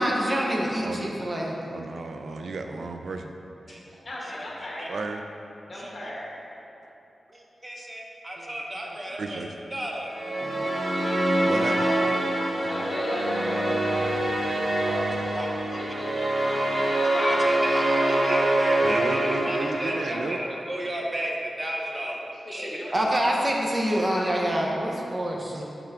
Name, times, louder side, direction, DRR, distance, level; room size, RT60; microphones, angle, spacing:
voice 1, 0.0-1.5 3.7-3.8 4.6-4.9 5.8-6.1 7.3-9.4 9.7-10.1 10.6-10.7 14.9-15.8 17.2-22.2 22.5-25.6, right 1 dB, 25° right, -1 dB, 0.6 m, -29 dB
voice 2, 1.7-3.3 4.9-5.2 8.4-8.6 8.9-9.5 10.4-10.7 11.4-11.9 18.8-20.4, right 3 dB, 65° right, 5 dB, 0.3 m, -34 dB
voice 3, 4.0-5.0 5.7-6.4 11.9-12.0 12.6-14.0 15.7-18.8 22.4-23.4 23.9-24.3, left 1 dB, 45° left, -5 dB, 1.5 m, -36 dB
sound 1, 10.1-20.5, right 1 dB, 45° right, 1.4 m, -25 dB
5.8 x 5.6 x 3.4 m, 2.8 s
wide cardioid pair, 120°, 0 cm